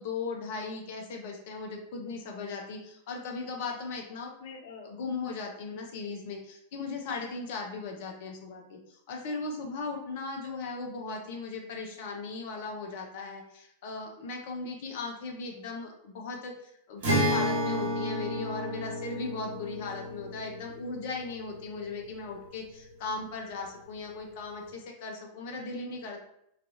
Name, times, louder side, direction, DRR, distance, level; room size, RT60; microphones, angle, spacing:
voice 1, 0.0-26.2, left 3 dB, 50° left, 1 dB, 0.5 m, -38 dB
Acoustic guitar, 17.0-22.5, equal, 55° right, 1.1 m, -32 dB
2.4 x 2.4 x 2.6 m, 0.75 s
figure-of-eight pair, 90°, 0 cm